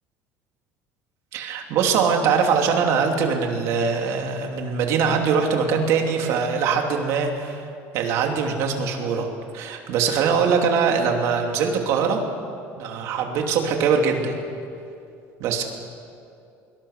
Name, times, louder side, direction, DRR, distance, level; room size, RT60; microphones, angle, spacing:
voice 1, 1.3-7.7 7.9-12.2 12.8-14.4 15.4-15.6, right 6 dB, 55° right, 2 dB, 2.8 m, -22 dB
24.5 x 23.0 x 6.7 m, 2.5 s
cardioid pair, 170°, 6 cm